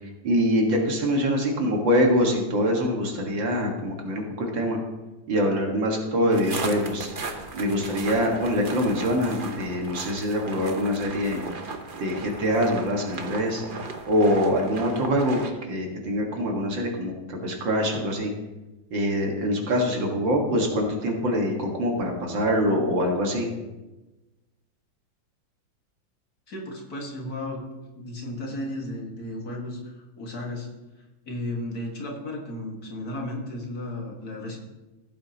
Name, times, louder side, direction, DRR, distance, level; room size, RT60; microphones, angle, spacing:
voice 1, 0.2-4.8 5.3-7.1 7.5-11.5 12.0-18.3 18.9-23.5, equal, 70° right, 1 dB, 2.4 m, -24 dB
sound 1, 6.3-15.5, right 3 dB, 45° right, 0.6 m, -36 dB
voice 2, 26.5-27.6 28.0-30.7 31.2-34.6, left 1 dB, 50° left, -1 dB, 2.1 m, -34 dB
15.5 x 8.6 x 2.9 m, 1.1 s
omnidirectional pair, 2.1 m